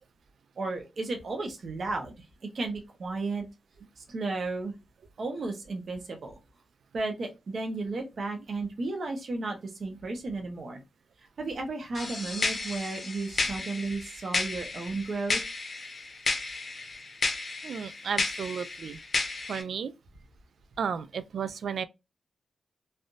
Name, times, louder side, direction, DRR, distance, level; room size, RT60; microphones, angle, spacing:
voice 1, 0.6-2.1 2.5-3.5 4.0-4.7 5.2-6.3 6.9-10.8 11.4-15.4, right 3 dB, 50° right, 0.7 m, -33 dB
sound 1, 11.9-19.6, left 3 dB, 40° left, 0.7 m, -33 dB
voice 2, 17.6-19.0 19.5-19.9 20.8-21.8, right 7 dB, 80° right, 0.3 m, -33 dB
3.3 x 2.6 x 2.3 m
wide cardioid pair, 170°, 0 cm